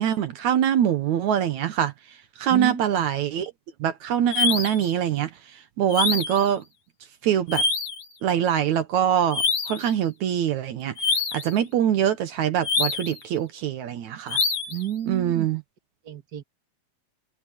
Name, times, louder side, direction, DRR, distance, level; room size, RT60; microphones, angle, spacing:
voice 1, 0.0-1.9 2.4-3.5 3.8-6.6 7.2-7.6 8.2-10.9 11.3-14.4 15.1-15.6, right 10 dB, 70° right, 2.5 m, -24 dB
voice 2, 2.5-3.1 14.7-15.5 16.0-16.4, right 11 dB, 35° right, 2.2 m, -31 dB
sound 1, 4.3-4.9 5.9-6.5 7.5-8.1 9.3-9.9 11.0-11.5 12.6-13.2 14.3-14.8, left 4 dB, 75° left, 5.1 m, -25 dB
omnidirectional pair, 3.5 m